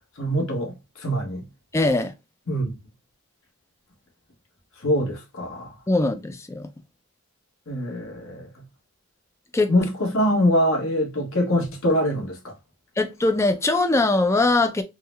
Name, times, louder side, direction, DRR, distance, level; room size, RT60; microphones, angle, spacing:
voice 1, 0.2-1.4 2.5-2.8 4.8-5.7 7.7-8.5 9.7-12.5, equal, 65° left, 1.2 m, -24 dB
voice 2, 1.7-2.1 5.9-6.7 9.5-9.7 13.0-14.8, left 2 dB, 10° left, 0.3 m, -21 dB
3.7 x 2.1 x 3.2 m
head